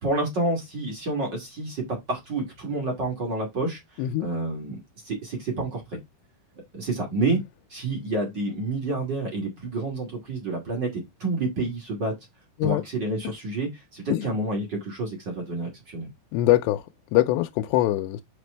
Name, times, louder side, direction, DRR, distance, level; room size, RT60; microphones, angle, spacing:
voice 1, 0.0-4.8 5.0-6.0 6.7-7.4 7.7-12.1 12.6-16.1, right 2 dB, 30° right, 2.2 m, -29 dB
voice 2, 4.0-4.3 7.3-7.4 12.6-12.8 14.1-14.3 16.3-18.2, left 15 dB, 90° left, 2.8 m, -23 dB
6.5 x 5.2 x 3.3 m
omnidirectional pair, 4.8 m